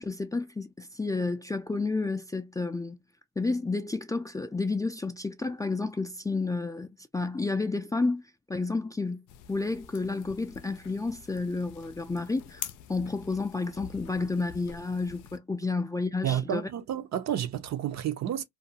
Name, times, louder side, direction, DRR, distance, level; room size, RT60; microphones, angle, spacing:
voice 1, 0.0-3.0 3.4-8.2 8.5-16.7, left 3 dB, 10° left, 0.3 m, -31 dB
sound 1, 9.3-15.4, left 10 dB, 90° left, 0.5 m, -46 dB
voice 2, 16.2-18.4, right 10 dB, 60° right, 0.7 m, -30 dB
2.4 x 2.3 x 2.7 m
cardioid pair, 90°, 30 cm